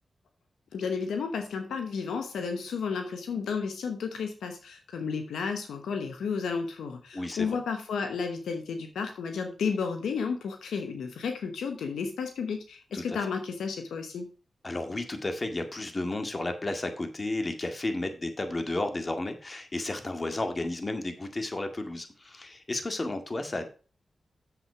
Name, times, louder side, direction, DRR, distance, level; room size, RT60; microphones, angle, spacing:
voice 1, 0.7-14.3, left 5 dB, 90° left, 6 dB, 1.0 m, -32 dB
voice 2, 7.1-7.6 12.9-13.3 14.6-23.7, left 2 dB, 40° left, 6 dB, 2.0 m, -33 dB
7.3 x 7.1 x 4.6 m, 0.36 s
supercardioid pair, 40°, 0 cm